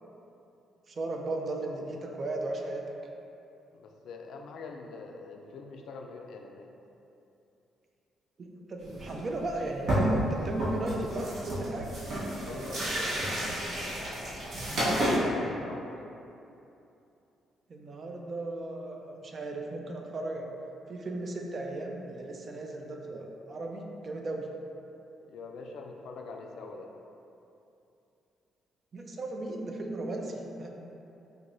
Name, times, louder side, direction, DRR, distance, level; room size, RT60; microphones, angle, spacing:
voice 1, 0.9-2.8 8.4-11.9 17.7-20.5 20.9-24.5 28.9-30.7, right 2 dB, 45° right, 1 dB, 0.4 m, -36 dB
voice 2, 3.7-6.7 12.4-12.9 15.1-16.1 25.2-26.9, left 4 dB, 70° left, 2 dB, 0.3 m, -43 dB
sound 1, 8.8-9.2 9.5-9.6 9.9-10.3 10.6-15.2, right 1 dB, 65° right, 1.0 m, -31 dB
4.6 x 2.1 x 2.5 m, 2.8 s
cardioid pair, 90°, 0 cm